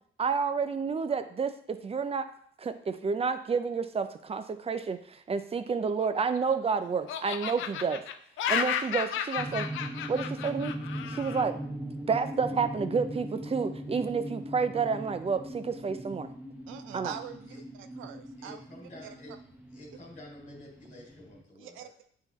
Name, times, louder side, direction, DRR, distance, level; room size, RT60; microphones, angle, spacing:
voice 1, 0.2-2.3 2.6-8.0 8.5-9.7 10.1-10.8 11.1-11.6 12.0-16.3 16.9-17.1, right 5 dB, 30° right, 10 dB, 0.6 m, -30 dB
Laughter, 5.9-6.7 7.1-11.5, left 9 dB, 80° left, 0.5 m, -33 dB
sound 1, 9.4-21.4, equal, 10° right, 1.1 m, -40 dB
voice 2, 16.7-18.6 19.0-19.1 21.6-22.1, right 9 dB, 80° right, 9 dB, 0.6 m, -44 dB
voice 3, 18.4-19.3 19.7-22.1, left 1 dB, 40° left, -1 dB, 2.4 m, -49 dB
8.9 x 3.8 x 3.0 m, 0.62 s
cardioid pair, 90°, 20 cm